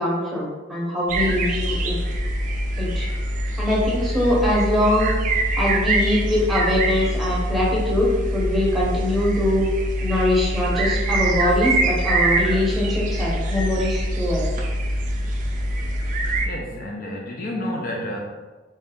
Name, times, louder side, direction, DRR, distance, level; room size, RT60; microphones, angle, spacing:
voice 1, 0.0-2.0 2.8-3.0 3.6-5.2 5.6-9.7 10.0-14.4, left 1 dB, ahead, -7 dB, 0.8 m, -22 dB
sound 1, 1.1-16.5, right 1 dB, 45° right, 0.3 m, -24 dB
voice 2, 16.4-18.2, left 1 dB, 50° left, -1 dB, 0.4 m, -30 dB
2.6 x 2.2 x 3.5 m, 1.2 s
head